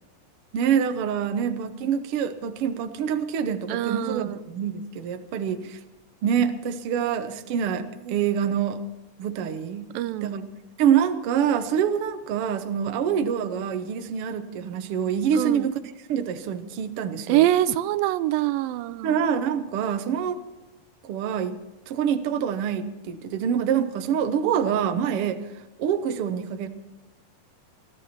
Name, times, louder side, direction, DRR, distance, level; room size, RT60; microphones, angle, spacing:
voice 1, 0.5-5.8 6.2-8.8 9.2-9.9 10.2-10.4 10.8-15.7 16.1-17.4 19.0-20.4 21.0-21.6 21.9-25.4 25.8-26.7, right 8 dB, 65° right, 8 dB, 1.4 m, -26 dB
voice 2, 3.7-4.4 9.9-10.4 15.3-15.7 17.3-19.2 25.2-25.3, right 14 dB, 90° right, 15 dB, 2.4 m, -24 dB
22.0 x 13.5 x 4.3 m, 1.0 s
omnidirectional pair, 3.9 m